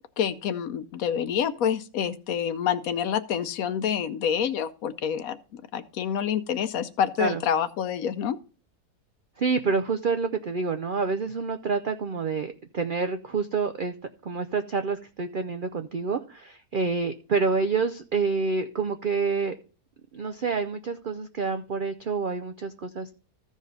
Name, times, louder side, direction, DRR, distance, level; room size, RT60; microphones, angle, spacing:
voice 1, 0.2-8.4, left 8 dB, 70° left, 1.1 m, -27 dB
voice 2, 9.4-13.9 14.2-19.5 20.1-23.2, right 4 dB, 70° right, 0.5 m, -28 dB
14.5 x 4.9 x 4.0 m
omnidirectional pair, 1.6 m